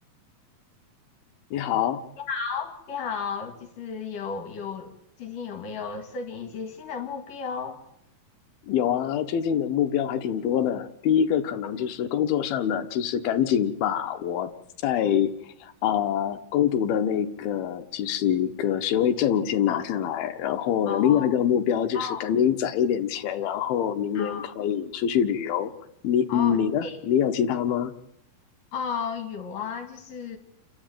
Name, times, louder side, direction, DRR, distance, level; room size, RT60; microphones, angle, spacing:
voice 1, 1.5-2.0 8.7-14.5 14.8-15.3 15.6-25.7 26.0-27.9, left 9 dB, 80° left, 7 dB, 3.0 m, -25 dB
voice 2, 2.2-4.9 5.2-7.8 20.9-21.3 21.9-22.3 24.2-24.5 26.3-27.0 28.7-30.4, left 6 dB, 60° left, 5 dB, 3.8 m, -33 dB
28.0 x 13.0 x 9.1 m, 0.80 s
omnidirectional pair, 4.4 m